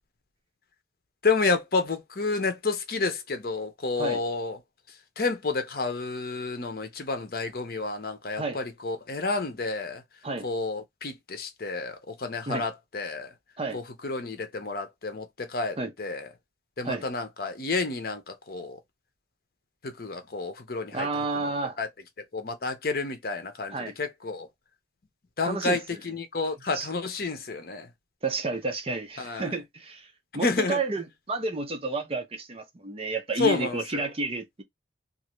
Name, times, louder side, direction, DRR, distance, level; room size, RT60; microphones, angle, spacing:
voice 1, 1.2-4.6 5.2-10.0 10.4-13.3 13.7-16.3 16.8-18.8 19.8-21.1 21.8-21.9 22.3-24.5 25.4-27.9 29.2-29.5 30.3-30.8 33.4-34.0, left 3 dB, 55° left, 0.8 m, -30 dB
voice 2, 20.9-21.8 23.7-24.0 25.4-26.0 26.7-26.9 28.2-34.6, right 3 dB, 35° right, 0.6 m, -31 dB
2.7 x 2.5 x 3.0 m
head